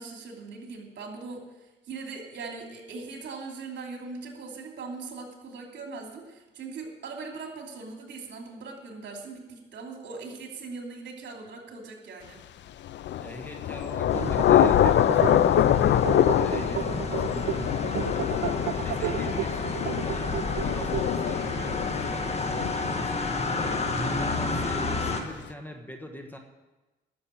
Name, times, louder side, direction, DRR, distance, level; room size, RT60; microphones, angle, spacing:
voice 1, 0.0-12.4, right 4 dB, 65° right, 1 dB, 3.0 m, -40 dB
Thunder / Rain, 12.8-24.4, left 11 dB, 65° left, 0.5 m, -25 dB
voice 2, 13.2-18.3 18.7-26.4, equal, 10° left, 3 dB, 1.4 m, -43 dB
sound 1, 13.9-21.5, right 14 dB, 80° right, 0.4 m, -34 dB
sound 2, 14.1-25.2, left 3 dB, 30° left, 1.7 m, -31 dB
12.0 x 7.1 x 8.7 m, 1.1 s
cardioid pair, 90°, 20 cm